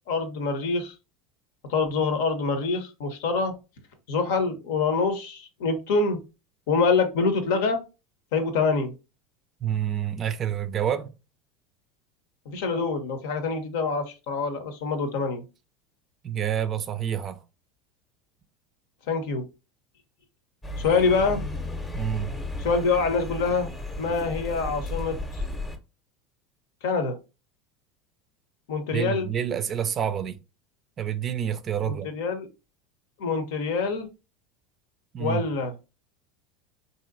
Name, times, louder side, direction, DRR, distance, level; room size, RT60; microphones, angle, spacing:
voice 1, 0.1-0.9 1.7-3.5 4.1-6.2 6.7-7.8 8.3-8.9 12.5-15.4 19.1-19.5 20.8-21.4 22.6-23.7 24.0-25.4 26.8-27.2 28.7-29.3 31.8-32.5 33.2-34.1 35.2-35.7, left 4 dB, 65° left, 0.8 m, -25 dB
voice 2, 9.6-11.1 16.2-17.4 21.9-22.3 28.9-30.4 31.0-32.1 35.1-35.4, right 9 dB, 35° right, 0.4 m, -28 dB
sound 1, 20.6-25.8, left 2 dB, 15° left, 0.8 m, -34 dB
3.7 x 2.7 x 2.5 m
figure-of-eight pair, 75°, 0 cm